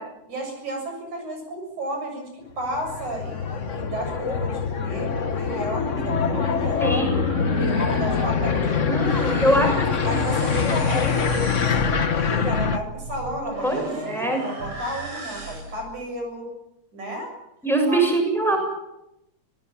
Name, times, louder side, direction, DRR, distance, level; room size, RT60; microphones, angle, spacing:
voice 1, 0.3-6.8 7.5-9.6 10.0-11.9 12.3-13.7 14.1-16.5 16.9-17.3 17.9-18.0, right 1 dB, 85° right, 3 dB, 8.5 m, -33 dB
sound 1, 2.6-12.8, left 6 dB, 70° left, 0.7 m, -24 dB
sound 2, 6.0-15.9, right 2 dB, 60° right, 7.0 m, -37 dB
voice 2, 6.8-7.2 8.8-10.1 13.6-14.4 17.6-18.6, right 1 dB, ahead, 2 dB, 7.3 m, -23 dB
26.5 x 18.5 x 7.3 m, 0.87 s
omnidirectional pair, 3.3 m